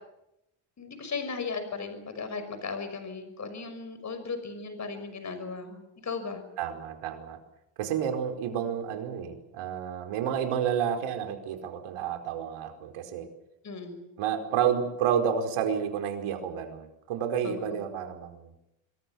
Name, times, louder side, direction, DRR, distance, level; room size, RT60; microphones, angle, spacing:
voice 1, 0.8-6.4 13.6-14.1 17.4-17.7, left 4 dB, 35° left, 9 dB, 5.9 m, -36 dB
voice 2, 6.6-7.4 7.8-13.3 14.2-18.5, right 8 dB, 90° right, 6 dB, 5.0 m, -30 dB
26.5 x 23.5 x 7.2 m, 0.85 s
cardioid pair, 135°, 49 cm